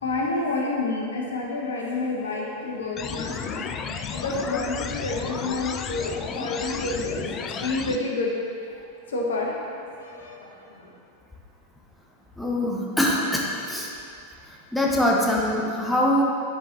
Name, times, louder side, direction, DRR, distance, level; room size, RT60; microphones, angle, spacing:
voice 1, 0.0-7.3 7.6-8.3 8.8-11.0, left 3 dB, 70° left, -1 dB, 0.9 m, -29 dB
sound 1, 3.0-8.0, left 6 dB, 30° left, 0.3 m, -33 dB
voice 2, 12.4-13.9 14.7-16.2, left 1 dB, ahead, -4 dB, 0.9 m, -23 dB
9.3 x 4.8 x 2.9 m, 2.4 s
figure-of-eight pair, 90°, 0 cm